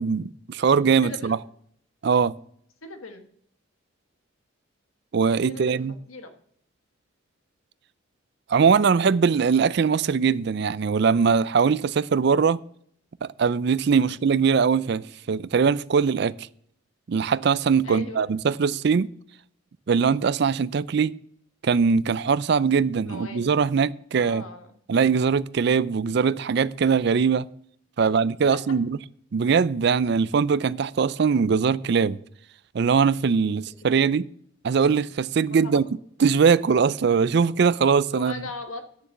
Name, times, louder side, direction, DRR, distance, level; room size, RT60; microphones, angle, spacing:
voice 1, 0.0-1.4 2.0-2.3 5.1-5.9 8.5-12.6 13.2-16.3 17.1-19.1 19.9-21.2 21.6-24.4 24.9-27.5 28.0-29.0 29.3-32.2 32.7-34.2 34.6-35.9 36.2-38.4, right 6 dB, 55° right, 0.4 m, -21 dB
voice 2, 1.0-1.4 2.8-3.2 5.5-5.8 6.1-6.3 14.1-14.2 17.8-18.3 22.8-23.5 24.2-24.7 28.0-28.1 28.5-28.8 33.4-33.5 33.8-34.1 35.5-35.8 38.1-39.1, left 3 dB, 85° left, 1.5 m, -39 dB
9.5 x 6.9 x 7.4 m
head